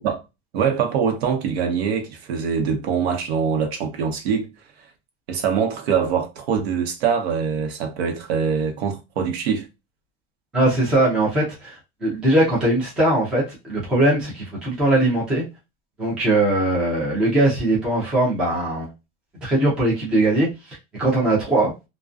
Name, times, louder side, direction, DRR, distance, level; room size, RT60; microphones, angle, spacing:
voice 1, 0.5-4.5 5.3-9.7, right 6 dB, 85° right, 0.8 m, -23 dB
voice 2, 10.5-15.4 16.0-18.9 19.4-20.5 21.0-21.7, right 1 dB, 5° right, 0.3 m, -20 dB
2.4 x 2.2 x 2.4 m
supercardioid pair, 170°, 31 cm